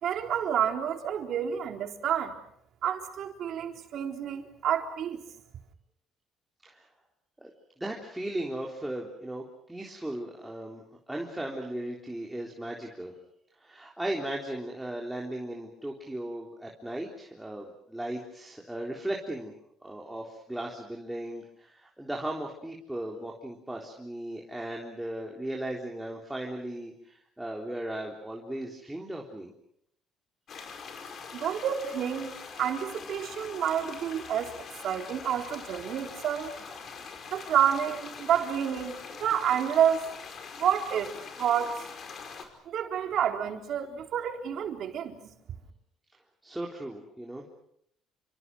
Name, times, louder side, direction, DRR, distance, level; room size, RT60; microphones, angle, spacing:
voice 1, 0.0-2.3 2.8-5.2 31.3-32.3 32.6-34.5 34.8-36.7 37.3-40.1 40.6-41.1 41.4-41.8 42.7-45.2, right 9 dB, 60° right, 4 dB, 4.0 m, -29 dB
voice 2, 7.8-13.1 13.6-19.5 19.8-29.5 46.4-47.5, right 1 dB, 5° right, -1 dB, 3.7 m, -37 dB
sound 1, 30.5-42.4, left 5 dB, 45° left, 5.1 m, -43 dB
29.5 x 26.0 x 6.3 m, 0.73 s
cardioid pair, 125°, 0 cm